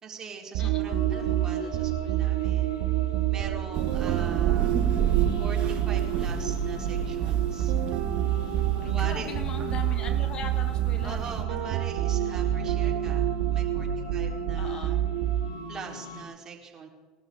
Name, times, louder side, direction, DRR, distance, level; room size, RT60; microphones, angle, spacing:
voice 1, 0.0-2.8 3.3-4.7 5.4-7.7 8.7-9.3 11.0-15.0 15.7-16.9, right 5 dB, 30° right, -1 dB, 3.7 m, -42 dB
sound 1, 0.5-15.7, right 12 dB, 65° right, 0.9 m, -27 dB
voice 2, 0.6-1.0 8.8-11.7 14.5-15.0, left 6 dB, 40° left, 6 dB, 1.7 m, -40 dB
sound 2, 0.8-16.2, left 5 dB, 80° left, 1.8 m, -42 dB
Thunder / Rain, 3.7-11.4, right 9 dB, 45° right, 1.1 m, -32 dB
21.0 x 12.5 x 3.7 m, 1.5 s
hypercardioid pair, 80°, 2 cm